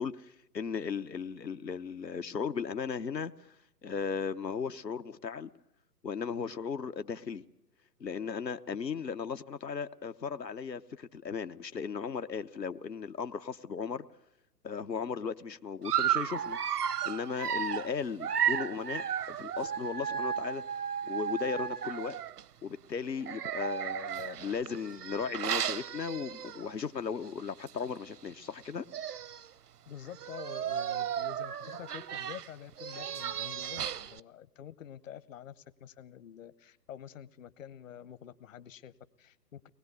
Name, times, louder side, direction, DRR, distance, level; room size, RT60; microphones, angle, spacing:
voice 1, 0.0-3.3 3.8-5.5 6.0-7.4 8.0-14.0 14.6-16.6 17.0-20.6 21.0-22.2 22.6-28.8, left 6 dB, 90° left, 1.0 m, -36 dB
Dog, 15.8-22.4 23.2-26.8 27.2-27.4 27.7-27.8 28.6-28.7 28.9-29.5 30.1-34.2, right 9 dB, 70° right, 0.7 m, -34 dB
voice 2, 29.9-39.7, left 9 dB, 50° left, 1.0 m, -48 dB
23.5 x 20.0 x 8.2 m
figure-of-eight pair, 125°, 49 cm